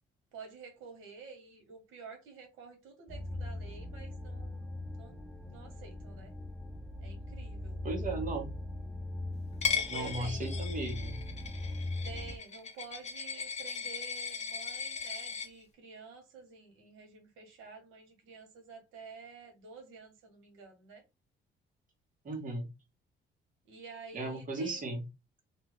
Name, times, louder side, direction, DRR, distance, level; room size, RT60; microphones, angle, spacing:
voice 1, 0.3-5.2 5.5-6.3 7.0-7.8 9.7-10.7 12.0-21.0 23.6-24.8, right 5 dB, 90° right, 1.2 m, -50 dB
sound 1, 3.1-12.4, left 1 dB, ahead, 0.7 m, -40 dB
voice 2, 7.8-8.5 9.9-11.2 22.2-22.7 24.1-25.0, right 2 dB, 40° right, 1.2 m, -36 dB
Coin (dropping), 9.6-15.5, left 6 dB, 35° left, 0.8 m, -37 dB
2.6 x 2.3 x 3.1 m
cardioid pair, 90°, 20 cm